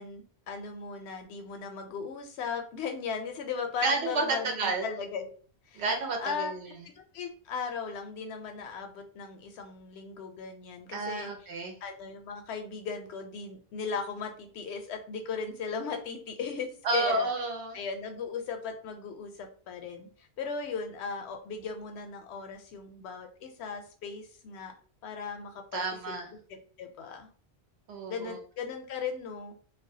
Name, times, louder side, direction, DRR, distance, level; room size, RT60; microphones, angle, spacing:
voice 1, 0.0-5.3 5.7-5.8 6.2-6.5 7.1-11.3 11.8-17.3 17.7-24.7 25.0-25.8 26.5-27.3 28.1-29.5, left 5 dB, 85° left, 5 dB, 0.8 m, -37 dB
voice 2, 3.8-4.9 5.7-6.8 10.9-11.8 16.8-17.8 25.7-26.3 27.9-28.4, right 3 dB, 85° right, 2 dB, 1.0 m, -30 dB
2.3 x 2.1 x 2.6 m, 0.42 s
omnidirectional pair, 1.1 m